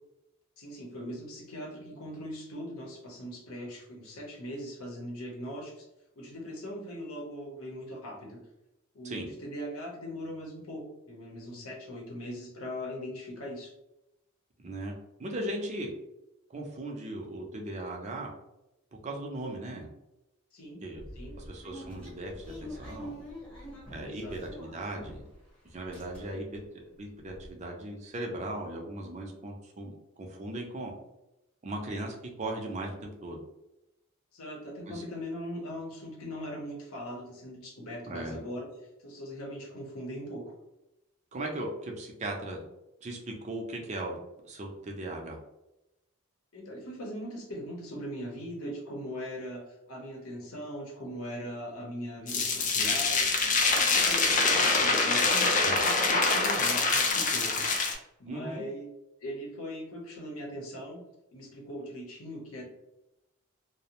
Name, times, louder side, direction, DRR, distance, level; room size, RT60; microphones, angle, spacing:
voice 1, 0.6-5.8 6.2-8.4 8.9-13.7 20.5-20.8 21.2-21.4 24.0-24.4 26.3-26.4 34.3-38.7 39.0-40.5 46.5-53.3 53.6-57.7 58.2-58.8 59.2-61.0 61.3-62.7, equal, 70° left, 0 dB, 0.8 m, -40 dB
voice 2, 14.6-14.9 15.2-15.9 16.5-18.3 19.0-19.9 20.8-21.0 21.5-23.2 23.9-25.2 25.7-26.6 27.0-30.9 31.6-33.4 34.9-35.0 38.1-38.4 41.3-42.6 43.0-44.2 44.4-45.4 55.6-55.8 58.3-58.6, right 1 dB, 30° right, 1 dB, 0.4 m, -37 dB
sound 1, 21.0-25.5 25.7-26.6 27.0-27.1 27.3-27.5, equal, 5° left, 0.7 m, -45 dB
sound 2, 52.3-57.9, left 3 dB, 35° left, 0.4 m, -25 dB
2.5 x 2.0 x 2.9 m, 0.90 s
head